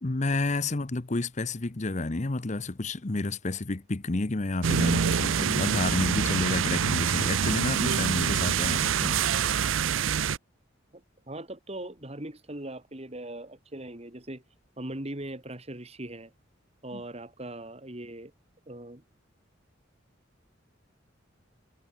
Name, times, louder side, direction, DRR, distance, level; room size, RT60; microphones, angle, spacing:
voice 1, 0.0-9.2 9.5-9.6 16.9-17.0, left 2 dB, 35° left, 0.8 m, -30 dB
sound 1, 4.6-10.4, right 7 dB, 85° right, 0.6 m, -26 dB
voice 2, 11.3-14.4 14.8-16.3 16.8-18.3 18.7-19.0, right 1 dB, 30° right, 2.5 m, -40 dB
head